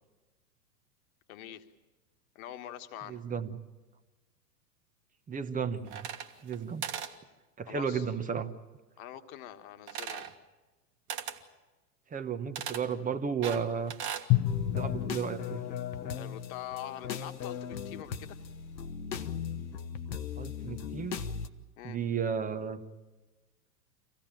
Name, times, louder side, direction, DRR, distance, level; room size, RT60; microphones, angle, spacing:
voice 1, 1.3-1.7 2.3-3.2 7.7-8.1 9.0-10.3 16.1-18.4 21.8-22.0, left 12 dB, 55° left, 8 dB, 1.6 m, -44 dB
voice 2, 3.1-3.6 5.3-6.1 6.4-6.8 7.6-8.5 12.1-13.9 14.8-15.6 20.4-21.2 21.8-22.8, right 6 dB, 15° right, 10 dB, 1.0 m, -33 dB
sound 1, 5.9-6.6 6.8-7.2 9.9-10.3 11.1-11.4 12.6-12.9 13.4-14.3, right 9 dB, 60° right, 1.7 m, -38 dB
Drum, 14.3-17.2, left 16 dB, 30° left, 0.8 m, -33 dB
sound 2, 14.4-21.5, left 7 dB, 85° left, 1.1 m, -37 dB
25.0 x 16.5 x 8.9 m, 1.2 s
hypercardioid pair, 100°, 50 cm